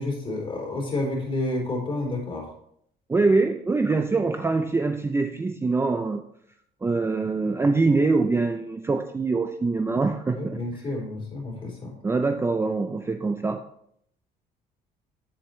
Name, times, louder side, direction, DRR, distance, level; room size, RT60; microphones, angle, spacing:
voice 1, 0.0-2.5 10.3-11.9, left 2 dB, 30° left, -2 dB, 3.9 m, -30 dB
voice 2, 3.1-6.3 6.8-10.8 12.0-13.6, right 3 dB, 15° right, 7 dB, 0.4 m, -24 dB
8.9 x 7.7 x 3.1 m, 0.69 s
cardioid pair, 110°, 17 cm